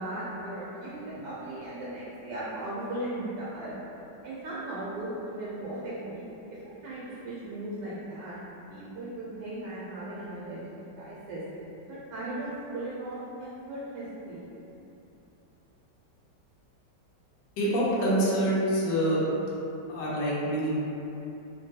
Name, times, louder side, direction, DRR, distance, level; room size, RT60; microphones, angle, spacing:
voice 1, 0.0-3.7 4.2-6.2 6.8-8.4 8.7-10.6 11.0-11.4 11.8-14.4, right 1 dB, 80° right, -8 dB, 1.2 m, -37 dB
voice 2, 17.6-19.2 19.9-20.7, right 1 dB, 85° left, -6 dB, 1.3 m, -26 dB
3.3 x 2.2 x 2.7 m, 3.0 s
omnidirectional pair, 1.9 m